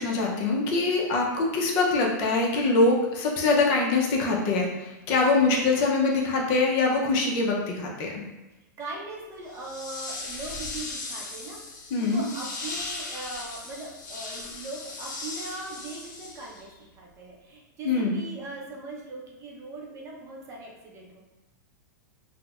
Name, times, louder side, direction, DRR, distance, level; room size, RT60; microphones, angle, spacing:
voice 1, 0.0-8.2 11.9-12.2 17.8-18.2, left 3 dB, 45° left, -1 dB, 0.6 m, -24 dB
voice 2, 8.8-16.7 17.0-21.2, right 2 dB, 30° right, -2 dB, 0.7 m, -40 dB
sound 1, 9.5-16.7, left 3 dB, 75° left, 0.8 m, -38 dB
3.8 x 2.1 x 2.4 m, 1.0 s
hypercardioid pair, 135°, 10 cm